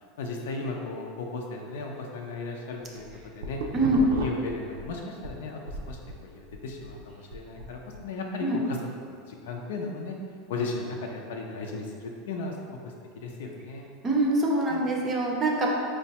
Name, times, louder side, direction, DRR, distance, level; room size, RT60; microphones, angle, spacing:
voice 1, 0.2-3.1 3.3-3.6 4.0-8.8 9.1-10.2 10.5-12.6 12.8-13.9 14.7-14.8, left 3 dB, 85° left, 1 dB, 0.5 m, -36 dB
sound 1, 2.8-5.3 5.7-8.0, right 3 dB, 80° right, 0.3 m, -37 dB
voice 2, 3.7-4.1 8.4-8.6 14.0-15.7, right 1 dB, 25° right, -1 dB, 0.5 m, -24 dB
4.5 x 2.1 x 2.8 m, 2.2 s
supercardioid pair, 145°, 0 cm